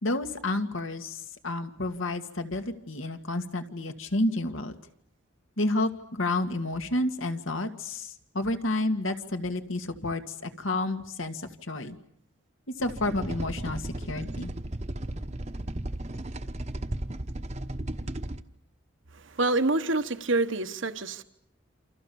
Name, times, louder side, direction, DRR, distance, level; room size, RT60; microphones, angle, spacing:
voice 1, 0.0-4.8 5.6-12.0 12.8-14.5, left 2 dB, 80° left, 2.1 m, -30 dB
sound 1, 12.8-18.4, right 1 dB, 35° right, 1.0 m, -35 dB
voice 2, 19.1-21.2, right 2 dB, 70° right, 1.3 m, -27 dB
28.5 x 27.5 x 7.1 m
head